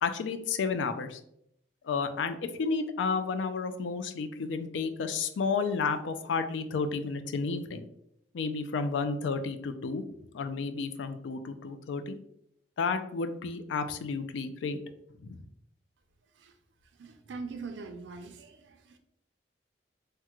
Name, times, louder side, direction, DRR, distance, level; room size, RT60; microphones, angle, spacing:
voice 1, 0.0-1.2 1.8-7.8 8.3-10.0 10.3-12.2 12.8-14.8 15.2-15.4, left 4 dB, 80° left, 9 dB, 0.4 m, -31 dB
voice 2, 16.2-16.6 16.8-19.0, right 4 dB, 80° right, 6 dB, 0.4 m, -43 dB
3.5 x 2.1 x 2.9 m, 0.74 s
head